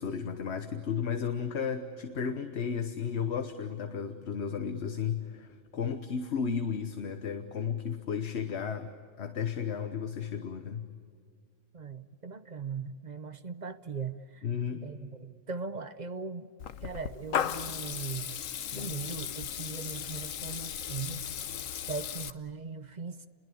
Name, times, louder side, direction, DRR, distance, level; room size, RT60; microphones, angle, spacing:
voice 1, 0.0-10.9 14.4-14.9, left 6 dB, 55° left, 8 dB, 1.4 m, -34 dB
voice 2, 11.7-14.5 14.8-16.5 16.8-18.4 18.7-21.2 21.9-23.2, right 5 dB, 40° right, 12 dB, 0.9 m, -39 dB
Water tap faucet / Liquid, 16.6-22.3, left 9 dB, 80° left, 1.2 m, -36 dB
30.0 x 22.0 x 8.6 m, 2.1 s
omnidirectional pair, 1.4 m